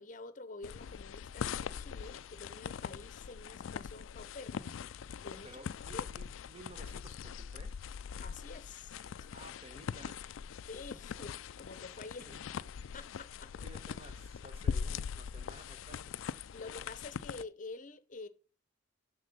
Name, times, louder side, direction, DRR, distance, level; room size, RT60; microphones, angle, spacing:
voice 1, 0.0-4.8 5.2-5.6 5.9-6.1 8.2-9.3 10.7-12.3 12.9-13.5 16.5-18.3, left 3 dB, 40° left, 0.8 m, -48 dB
sound 1, 0.6-17.4, left 7 dB, 85° left, 0.4 m, -42 dB
voice 2, 5.4-7.8 9.3-10.3 11.9-12.4 13.5-16.2, right 2 dB, 30° right, 1.2 m, -54 dB
7.6 x 6.4 x 6.7 m
head